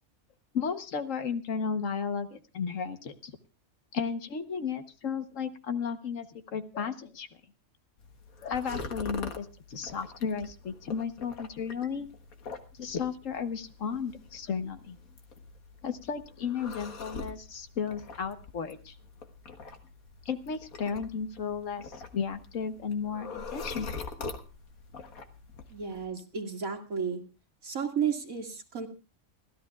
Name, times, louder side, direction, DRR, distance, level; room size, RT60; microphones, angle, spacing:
voice 1, 0.5-3.3 3.9-7.3 8.4-12.1 12.8-15.0 15.8-18.9 20.2-23.9, left 6 dB, 65° left, 10 dB, 1.4 m, -34 dB
sound 1, 8.0-26.1, left 4 dB, 85° left, 1.8 m, -44 dB
voice 2, 25.7-27.2 27.6-28.9, right 7 dB, 70° right, 1 dB, 2.7 m, -32 dB
29.0 x 13.5 x 2.4 m, 0.31 s
omnidirectional pair, 1.5 m